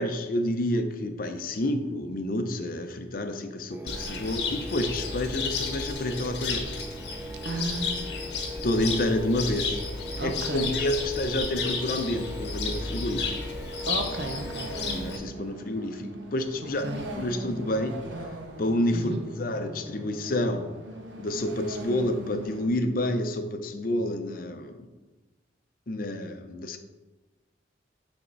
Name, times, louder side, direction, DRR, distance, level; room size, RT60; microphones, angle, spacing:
voice 1, 0.0-6.6 8.6-9.8 10.2-13.4 14.8-18.0 18.6-20.7 21.2-24.9 25.9-26.8, left 1 dB, 50° left, 7 dB, 0.6 m, -29 dB
sound 1, 3.7-15.2, equal, 10° right, 0.4 m, -41 dB
Cricket, 3.9-15.2, left 4 dB, 70° left, 0.9 m, -33 dB
voice 2, 7.4-8.2 10.2-10.7 13.9-14.7 16.8-17.0 18.9-19.2, right 2 dB, 65° right, 5 dB, 0.7 m, -33 dB
sound 2, 13.8-22.7, right 1 dB, 90° right, 0.9 m, -41 dB
9.1 x 3.6 x 3.9 m, 1.2 s
head